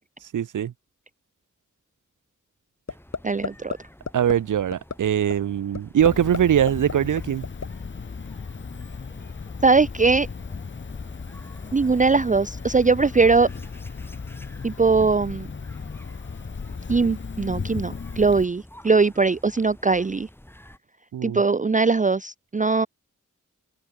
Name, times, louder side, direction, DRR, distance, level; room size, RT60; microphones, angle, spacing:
voice 1, 0.3-0.7 4.1-7.5 21.1-21.4, right 9 dB, 75° right, 0.6 m, -22 dB
sound 1, 2.9-3.2 3.4-3.8 4.1-4.3 4.7-4.9 5.3-5.4 5.7-6.4 6.7-7.7, left 5 dB, 55° left, 2.4 m, -29 dB
sound 2, 2.9-20.8, left 1 dB, 5° left, 6.1 m, -49 dB
voice 2, 3.2-3.7 9.6-10.3 11.7-13.5 14.6-15.5 16.9-20.3 21.2-22.9, right 4 dB, 25° right, 0.5 m, -20 dB
Cricket, 6.0-18.4, left 5 dB, 35° left, 0.9 m, -36 dB
open air
wide cardioid pair, 100°, 31 cm